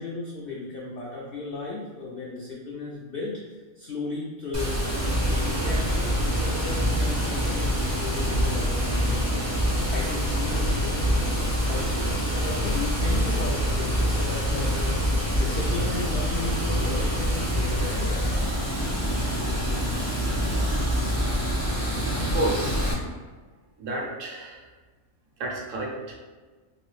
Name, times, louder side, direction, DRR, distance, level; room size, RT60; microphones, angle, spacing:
voice 1, 0.0-9.4 9.7-12.2 12.4-18.2, left 2 dB, 80° left, -3 dB, 0.5 m, -35 dB
Water, 4.5-22.9, equal, 20° right, 0.4 m, -25 dB
voice 2, 22.2-22.9 23.8-24.7 25.4-26.1, right 2 dB, 65° right, -1 dB, 0.9 m, -30 dB
3.0 x 2.6 x 3.1 m, 1.4 s
omnidirectional pair, 1.5 m